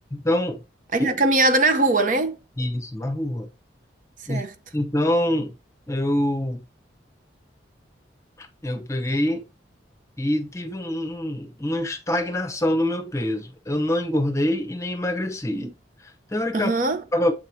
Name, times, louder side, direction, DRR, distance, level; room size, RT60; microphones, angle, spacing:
voice 1, 0.1-0.6 1.0-1.1 2.6-3.5 4.3-4.4 4.7-5.5 5.9-6.6 8.4-9.4 10.2-15.7 16.0-16.7 17.1-17.3, left 1 dB, 15° left, 0.8 m, -25 dB
voice 2, 0.9-2.4 4.3-4.5 15.5-15.7 16.5-17.0, right 2 dB, 45° right, 0.7 m, -21 dB
7.7 x 4.6 x 2.8 m
head